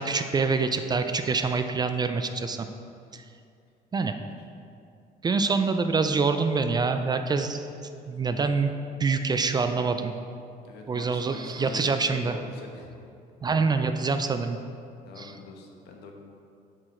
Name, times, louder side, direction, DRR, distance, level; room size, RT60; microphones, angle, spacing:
voice 1, 0.0-2.7 3.1-3.2 3.9-4.1 5.2-7.6 8.1-8.7 9.0-10.1 10.9-12.4 13.4-14.6 15.2-15.3, right 4 dB, 25° right, 8 dB, 0.4 m, -25 dB
voice 2, 10.6-12.9 15.0-16.1, left 3 dB, 75° left, 2 dB, 1.1 m, -43 dB
7.4 x 5.0 x 4.3 m, 2.5 s
cardioid pair, 110°, 17 cm